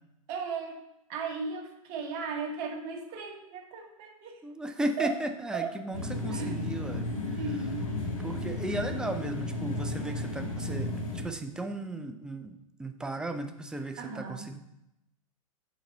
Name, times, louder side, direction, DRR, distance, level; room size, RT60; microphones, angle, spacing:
voice 1, 0.3-0.8 1.1-4.4 5.0-5.2 5.5-5.7 6.3-6.6 7.4-7.9 14.0-14.4, right 5 dB, 40° right, 3 dB, 1.2 m, -36 dB
voice 2, 4.4-7.1 7.3-7.4 8.2-14.6, right 1 dB, 5° right, 7 dB, 0.4 m, -35 dB
sound 1, 5.9-11.2, left 2 dB, 75° left, 1.3 m, -33 dB
6.4 x 4.0 x 4.5 m, 0.85 s
figure-of-eight pair, 95°, 18 cm